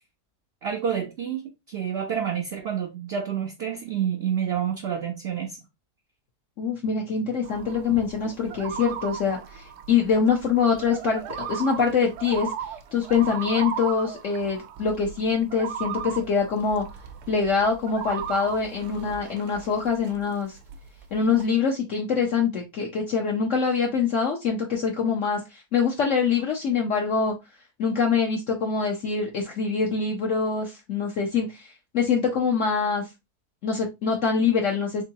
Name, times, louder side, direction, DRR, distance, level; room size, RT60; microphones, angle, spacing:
voice 1, 0.6-5.6, right 8 dB, 60° right, 0.7 m, -28 dB
voice 2, 6.6-12.5 12.9-16.8 17.3-20.6 21.1-27.3 27.8-33.1 33.6-35.0, left 5 dB, 60° left, 1.1 m, -24 dB
sound 1, 7.4-20.2 20.5-21.4, right 8 dB, 85° right, 1.2 m, -37 dB
3.8 x 3.5 x 2.7 m
omnidirectional pair, 1.6 m